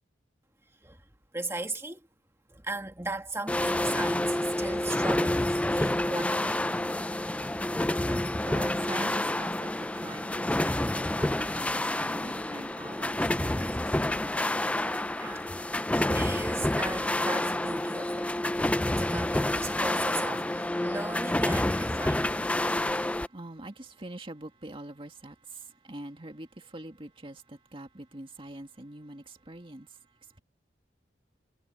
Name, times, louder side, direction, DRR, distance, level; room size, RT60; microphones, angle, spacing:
voice 1, 1.3-2.0 2.5-6.6 15.2-15.5 15.9-18.3 18.9-22.3, right 2 dB, 15° right, 2.0 m, -37 dB
sound 1, 3.5-23.3, left 1 dB, 5° left, 0.4 m, -28 dB
voice 2, 7.4-14.3 15.5-15.6 22.7-30.0, right 1 dB, 30° right, 2.2 m, -44 dB
head